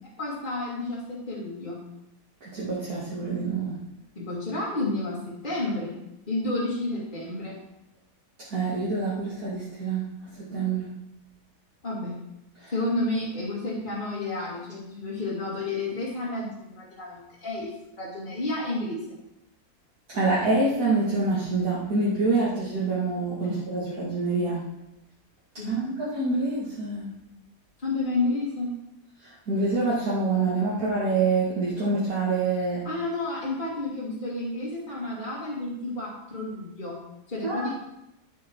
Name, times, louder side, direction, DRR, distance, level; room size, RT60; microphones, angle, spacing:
voice 1, 0.0-1.8 4.2-6.0 6.3-7.6 11.8-12.2 12.7-19.0 23.4-23.6 25.6-25.8 27.8-28.7 32.8-37.0 37.3-37.7, left 2 dB, 30° left, -7 dB, 2.7 m, -31 dB
voice 2, 2.5-3.8 8.5-10.0 10.5-10.9 12.6-12.7 20.1-24.6 25.6-27.1 29.5-32.8 37.4-37.7, right 3 dB, 60° right, -8 dB, 2.8 m, -26 dB
11.0 x 8.2 x 4.7 m, 0.86 s
omnidirectional pair, 1.8 m